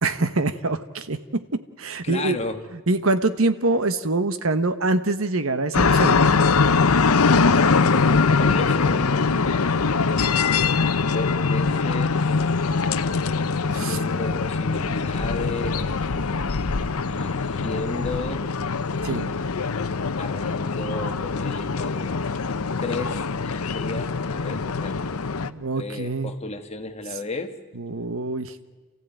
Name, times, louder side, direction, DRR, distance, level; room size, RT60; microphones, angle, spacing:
voice 1, 0.0-2.4 2.9-6.2 13.7-14.0 19.0-19.3 25.4-26.3 27.7-28.5, right 2 dB, 70° right, 11 dB, 1.2 m, -24 dB
voice 2, 2.0-2.6 8.2-9.7 10.6-12.2 13.7-16.4 17.1-18.5 19.1-19.7 20.2-22.2 22.8-25.3 25.5-27.5, left 2 dB, 30° left, 5 dB, 1.5 m, -34 dB
sound 1, 5.7-25.5, left 4 dB, 85° left, 0.8 m, -22 dB
28.5 x 15.5 x 9.1 m, 1.4 s
head